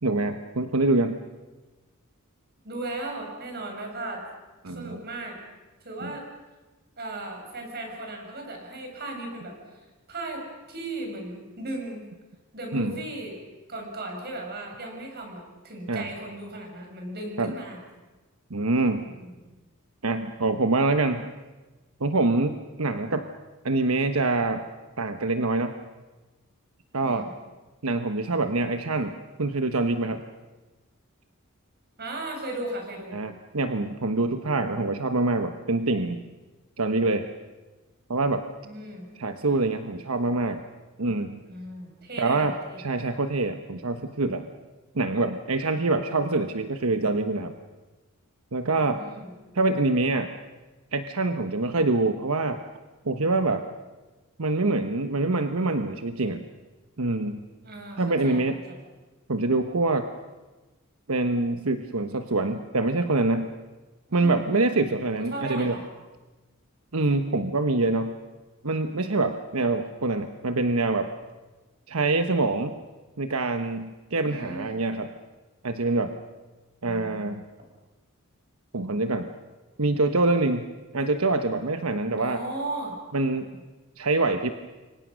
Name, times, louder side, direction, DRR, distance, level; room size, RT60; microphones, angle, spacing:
voice 1, 0.0-1.2 4.6-5.0 6.0-6.1 12.7-13.0 15.9-16.1 17.4-17.5 18.5-19.1 20.0-21.3 22.0-23.3 23.6-24.6 25.0-25.7 26.9-27.3 27.8-30.2 33.1-36.2 36.8-37.3 38.1-38.4 39.2-40.6 41.0-41.3 42.2-44.5 44.9-47.5 48.5-49.0 49.5-50.3 50.9-52.6 53.0-53.7 54.4-56.4 57.0-57.4 58.0-58.6 59.3-60.1 61.1-63.5 64.1-65.8 66.9-68.2 68.6-71.1 71.9-72.8 73.2-75.1 75.6-76.1 76.8-77.4 78.7-79.3 79.8-80.7 80.9-82.4 83.1-83.5 84.0-84.5, right 2 dB, 75° right, 7 dB, 1.1 m, -25 dB
voice 2, 2.6-4.2 4.7-5.4 5.8-6.2 7.0-9.8 10.1-12.0 12.5-13.4 13.7-17.8 19.0-19.3 27.0-27.3 32.0-33.2 38.6-39.1 41.5-42.8 48.7-49.3 57.6-58.8 64.1-64.4 64.9-65.0 65.3-65.8 74.3-74.8 76.8-77.2 82.2-83.0, right 2 dB, 45° right, 2 dB, 6.9 m, -36 dB
29.5 x 24.0 x 6.4 m, 1.2 s
head